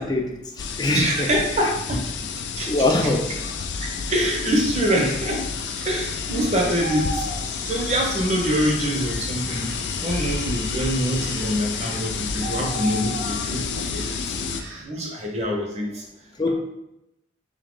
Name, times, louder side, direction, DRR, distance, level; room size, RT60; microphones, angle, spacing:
voice 1, 0.0-1.3 2.7-3.2 16.4-16.5, left 2 dB, 25° left, 2 dB, 0.4 m, -23 dB
sound 1, 0.6-14.6, left 5 dB, 85° left, 0.4 m, -30 dB
voice 2, 0.9-2.1 2.6-2.7 3.0-3.1 3.8-5.5 5.8-7.3 7.6-14.3 14.8-16.0, equal, 40° right, 0 dB, 0.8 m, -25 dB
sound 2, 4.0-14.8, right 1 dB, 75° right, 0.8 m, -38 dB
3.7 x 2.8 x 3.7 m, 0.86 s
head